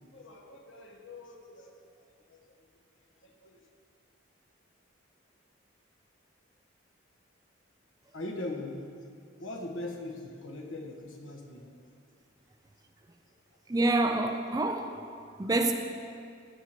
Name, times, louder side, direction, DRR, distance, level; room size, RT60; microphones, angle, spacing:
voice 1, 0.1-1.7 2.2-2.4 3.2-3.6 8.1-8.8 9.3-11.7, left 2 dB, 75° left, 1.4 m, -41 dB
voice 2, 13.7-15.0 15.4-15.7, right 2 dB, 20° right, 0.4 m, -27 dB
15.5 x 9.5 x 3.0 m
head